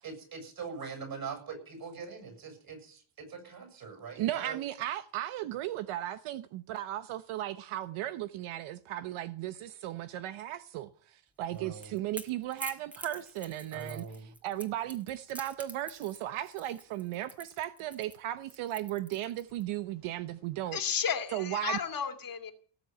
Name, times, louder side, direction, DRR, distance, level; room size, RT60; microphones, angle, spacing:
voice 1, 0.0-4.6 11.5-11.9 13.7-14.3, right 5 dB, 45° right, 7.9 m, -42 dB
voice 2, 4.2-14.0 14.4-20.8 21.3-21.8, right 13 dB, 80° right, 1.1 m, -36 dB
Crackle / Crack, 11.4-19.6, equal, 5° right, 2.0 m, -47 dB
voice 3, 20.7-22.5, left 7 dB, 45° left, 2.4 m, -33 dB
18.5 x 7.4 x 9.4 m
cardioid pair, 130°, 49 cm